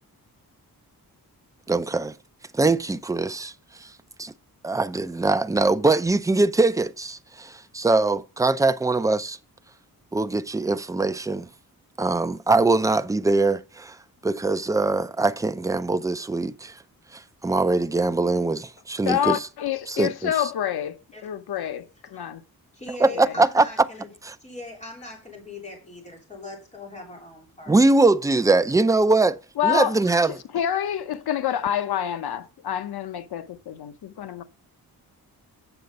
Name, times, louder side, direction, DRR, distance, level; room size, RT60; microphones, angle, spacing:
voice 1, 1.7-2.1 2.5-3.5 4.6-9.4 10.1-11.5 12.0-14.0 14.2-16.7 17.1-19.4 19.9-20.3 23.0-23.7 24.2-24.3 27.7-29.4 29.6-30.3, right 3 dB, 10° right, 0.4 m, -22 dB
voice 2, 19.0-22.4 23.1-23.4 29.6-30.0 30.3-34.4, left 10 dB, 85° left, 0.8 m, -27 dB
voice 3, 21.1-21.7 22.1-22.3 22.7-24.1 24.4-27.8, left 2 dB, 20° left, 3.3 m, -41 dB
8.0 x 6.8 x 5.2 m
wide cardioid pair, 150°, 37 cm